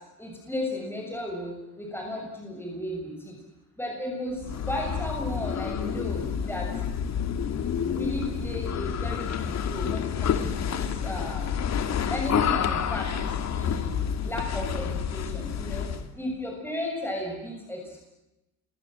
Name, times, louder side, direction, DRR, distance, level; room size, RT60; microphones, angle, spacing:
voice 1, 0.2-3.4 3.8-6.7 7.9-11.5 12.1-14.0 14.2-15.9 16.2-18.0, left 1 dB, 5° left, 0 dB, 7.1 m, -34 dB
sound 1, 4.4-16.1, left 8 dB, 50° left, 2.5 m, -29 dB
27.5 x 24.0 x 7.8 m, 0.96 s
supercardioid pair, 85°, 34 cm